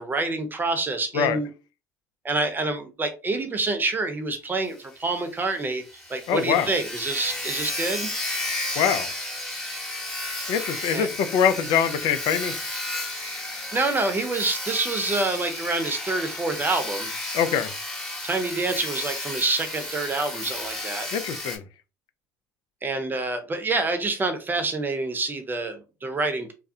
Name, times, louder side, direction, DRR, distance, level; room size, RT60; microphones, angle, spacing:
voice 1, 0.0-1.5 2.2-5.8 6.1-8.1 10.9-11.1 13.7-17.1 18.2-21.1 22.8-26.5, right 3 dB, 25° right, 0.7 m, -27 dB
Sawing, 4.7-4.8 5.1-5.2 5.6-5.7 5.8-21.6, left 1 dB, 5° left, 1.1 m, -33 dB
voice 2, 6.3-6.7 8.8-9.1 10.5-12.5 17.3-17.7 21.1-21.6, left 8 dB, 60° left, 0.4 m, -23 dB
2.3 x 2.1 x 2.7 m
hypercardioid pair, 65°, 8 cm